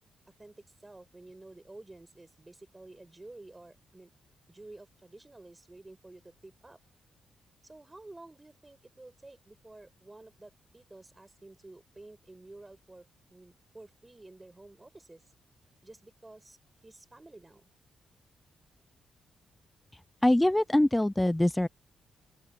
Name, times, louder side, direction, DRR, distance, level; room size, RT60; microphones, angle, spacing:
voice 1, 0.4-4.1 4.5-6.8 7.6-15.2 15.8-16.6 16.8-17.6, right 2 dB, 20° right, 6.9 m, -51 dB
voice 2, 20.2-21.7, left 1 dB, 10° left, 0.4 m, -23 dB
open air
supercardioid pair, 55°, 0 cm